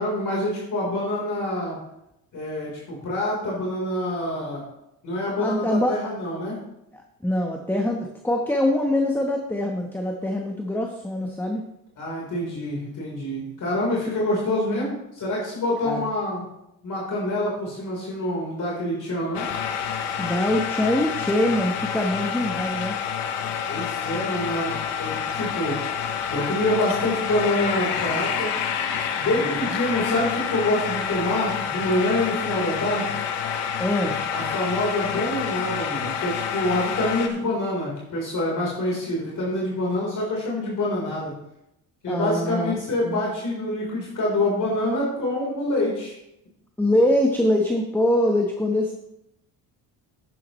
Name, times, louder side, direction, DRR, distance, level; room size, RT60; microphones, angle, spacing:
voice 1, 0.0-1.8 2.3-4.6 5.0-6.6 12.0-16.4 16.8-19.5 23.7-25.8 26.3-28.5 29.1-33.2 34.3-41.3 42.0-46.1, left 1 dB, 50° left, -4 dB, 4.0 m, -26 dB
voice 2, 5.4-5.9 6.9-11.6 15.8-16.1 20.2-23.0 29.4-29.8 33.8-34.1 42.1-42.7 43.0-43.2 46.8-48.9, left 1 dB, 5° left, 2 dB, 1.1 m, -24 dB
sound 1, 19.3-37.3, left 7 dB, 85° left, 1.2 m, -28 dB
10.5 x 9.4 x 3.1 m, 0.83 s
cardioid pair, 95°, 40 cm